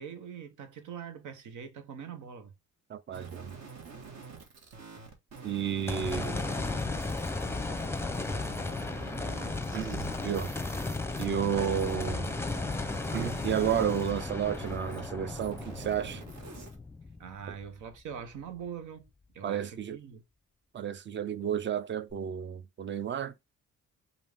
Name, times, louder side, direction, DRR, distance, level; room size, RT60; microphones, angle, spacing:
voice 1, 0.0-2.5 11.5-11.7 17.2-20.2, right 7 dB, 80° right, 1.0 m, -43 dB
voice 2, 2.9-3.5 5.4-6.6 9.7-10.5 11.2-12.3 13.1-16.2 17.5-17.6 19.4-20.0 20.7-23.3, right 8 dB, 40° right, 0.5 m, -32 dB
sound 1, 3.1-15.1 15.4-16.7, right 5 dB, 60° right, 1.6 m, -47 dB
sound 2, 5.9-18.2 18.7-18.8 22.1-22.2, left 3 dB, 10° left, 0.6 m, -35 dB
5.0 x 2.6 x 3.5 m
cardioid pair, 90°, 30 cm